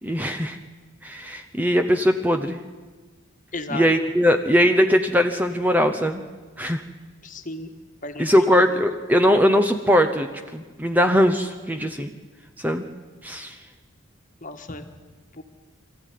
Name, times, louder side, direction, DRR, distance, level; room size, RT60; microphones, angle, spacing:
voice 1, 0.0-0.6 1.0-2.6 3.7-6.2 6.6-6.8 8.2-12.1 12.6-12.8 13.2-13.6, equal, 10° right, 6 dB, 0.8 m, -20 dB
voice 2, 3.5-3.8 7.2-7.7 8.0-8.3 8.7-8.8 14.4-14.9 15.3-15.4, left 2 dB, 40° left, 7 dB, 1.6 m, -34 dB
23.5 x 14.5 x 9.3 m, 1.4 s
head